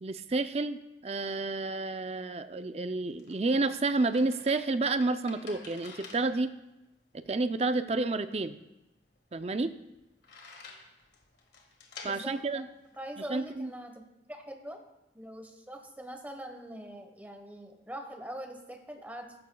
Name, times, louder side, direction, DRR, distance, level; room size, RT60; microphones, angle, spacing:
voice 1, 0.0-6.5 7.1-8.6 9.3-9.7 12.0-12.7 13.3-13.7, right 3 dB, 35° right, 10 dB, 0.5 m, -30 dB
sound 1, 2.7-13.6, left 4 dB, 75° left, 1.8 m, -52 dB
voice 2, 12.0-12.7 13.0-14.0 14.3-14.8 15.1-19.4, right 1 dB, 10° right, 4 dB, 1.1 m, -43 dB
14.5 x 14.0 x 2.3 m, 0.95 s
head